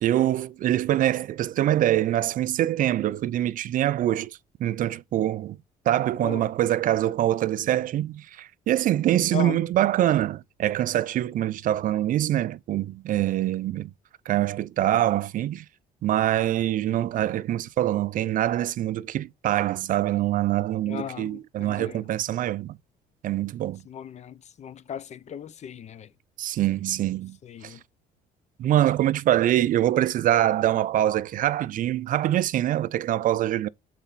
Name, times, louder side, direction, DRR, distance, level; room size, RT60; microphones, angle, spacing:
voice 1, 0.0-4.3 4.6-5.6 5.9-13.9 14.3-15.6 16.0-22.8 23.2-23.8 26.4-27.4 27.6-27.7 28.6-33.7, right 13 dB, 55° right, 0.4 m, -24 dB
voice 2, 20.8-22.0 23.9-26.1 27.4-27.8, left 9 dB, 40° left, 0.6 m, -37 dB
7.8 x 4.1 x 4.0 m
cardioid pair, 110°, 17 cm